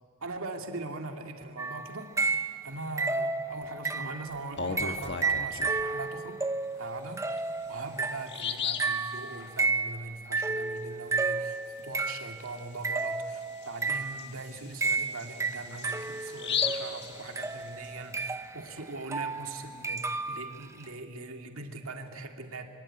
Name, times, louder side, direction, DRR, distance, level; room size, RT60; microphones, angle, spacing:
voice 1, 0.2-2.1 2.6-6.4 6.7-7.2 7.7-11.6 11.8-22.7, right 2 dB, 65° right, 4 dB, 2.4 m, -41 dB
sound 1, 1.6-2.7 3.0-4.3 4.8-12.4 12.8-14.3 14.8-20.6, right 3 dB, 15° right, 0.9 m, -32 dB
Bird vocalization bird call bird song, 4.3-5.8 7.3-7.4 7.8-7.9 8.3-9.0 12.5-12.6 13.0-13.1 13.6-17.9, left 7 dB, 50° left, 1.5 m, -35 dB
25.0 x 24.0 x 9.9 m, 2.1 s
head